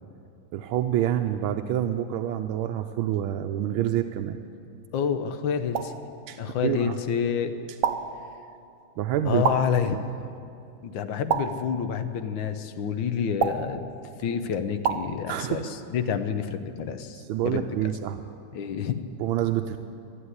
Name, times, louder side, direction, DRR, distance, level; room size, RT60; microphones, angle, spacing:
voice 1, 0.5-4.4 6.3-7.0 9.0-9.4 15.3-15.7 17.3-18.2 19.2-19.8, right 11 dB, 90° right, 5 dB, 1.4 m, -27 dB
voice 2, 4.9-5.9 6.4-7.6 9.2-10.1 10.8-13.8 14.2-17.6 18.5-19.0, left 7 dB, 75° left, 9 dB, 1.5 m, -28 dB
sound 1, 5.7-6.1 7.8-8.2 9.4-9.8 11.3-11.7 13.4-13.8 14.8-15.1, right 7 dB, 70° right, 0.7 m, -27 dB
13.0 x 11.0 x 9.6 m, 2.6 s
omnidirectional pair, 2.2 m